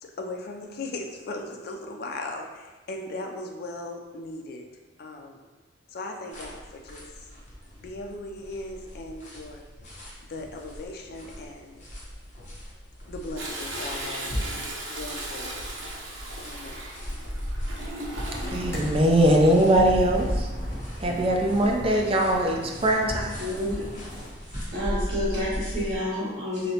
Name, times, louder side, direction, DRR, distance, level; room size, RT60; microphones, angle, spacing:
voice 1, 0.0-4.7 5.0-5.4 5.9-7.1 7.8-9.6 10.3-11.8 13.1-14.4 14.9-15.7 16.4-16.9, left 2 dB, 60° left, 2 dB, 0.4 m, -38 dB
sound 1, 6.3-26.0, equal, 45° left, 0.8 m, -37 dB
Toilet flush, 13.4-18.9 20.4-20.9 21.3-21.4, right 1 dB, 85° right, 0.7 m, -37 dB
sound 2, 18.3-24.3, equal, 15° left, 0.8 m, -38 dB
voice 2, 18.5-20.5 21.0-23.3, right 1 dB, 30° right, 0 dB, 0.4 m, -21 dB
voice 3, 22.9-24.2 24.5-26.7, left 1 dB, 60° right, -12 dB, 1.3 m, -30 dB
3.1 x 2.7 x 2.8 m, 1.2 s
head